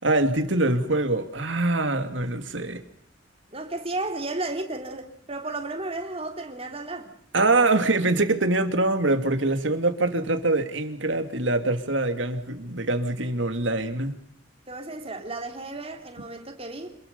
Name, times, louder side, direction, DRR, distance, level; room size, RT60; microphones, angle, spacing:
voice 1, 0.0-2.8 7.3-14.2, right 2 dB, 75° right, 2.7 m, -24 dB
voice 2, 3.5-7.1 14.7-17.0, right 2 dB, 30° right, 3.4 m, -33 dB
27.5 x 21.0 x 5.5 m
head